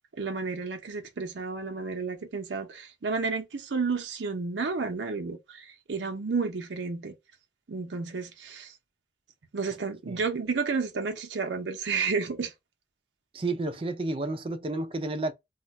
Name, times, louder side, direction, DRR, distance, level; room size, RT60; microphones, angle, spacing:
voice 1, 0.1-7.1 7.7-8.7 9.5-12.5, right 4 dB, 85° right, 0.6 m, -31 dB
voice 2, 13.3-15.3, right 2 dB, 30° right, 0.4 m, -31 dB
2.3 x 2.2 x 3.9 m
head